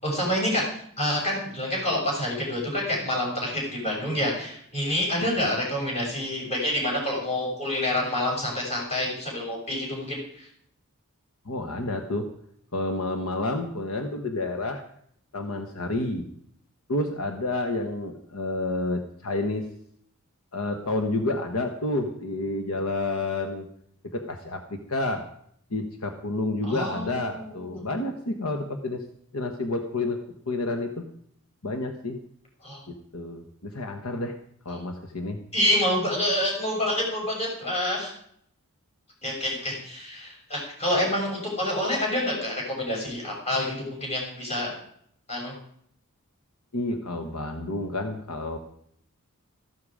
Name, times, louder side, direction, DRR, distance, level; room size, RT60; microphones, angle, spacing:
voice 1, 0.0-0.6 1.0-10.5 26.6-27.8 32.6-32.8 35.5-38.1 39.2-44.7 45.3-45.5, left 1 dB, 30° left, -2 dB, 6.8 m, -27 dB
voice 2, 11.4-12.3 12.7-14.8 15.3-16.3 16.9-19.7 20.5-23.7 24.0-25.3 25.7-29.0 29.3-30.2 30.5-31.0 31.6-32.2 32.9-34.4 34.6-35.4 46.7-48.6, left 2 dB, 70° left, 5 dB, 1.3 m, -29 dB
14.5 x 12.5 x 5.0 m, 0.66 s
head